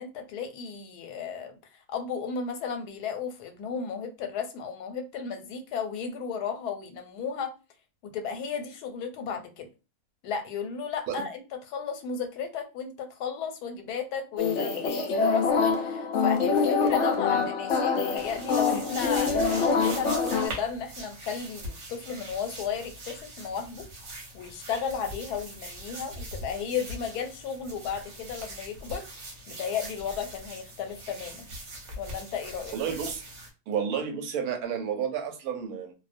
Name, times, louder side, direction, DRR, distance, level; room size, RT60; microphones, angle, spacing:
voice 1, 0.0-1.6 1.9-7.5 8.0-9.7 10.2-23.9 24.3-29.0 29.5-31.5 32.0-32.7, left 6 dB, 85° left, 1.1 m, -34 dB
sound 1, 14.4-20.5, left 5 dB, 65° left, 0.7 m, -25 dB
sound 2, 18.2-33.5, right 1 dB, 55° right, 1.0 m, -41 dB
voice 2, 32.7-33.2 33.7-35.9, right 7 dB, 75° right, 1.0 m, -31 dB
2.5 x 2.0 x 2.5 m
omnidirectional pair, 1.6 m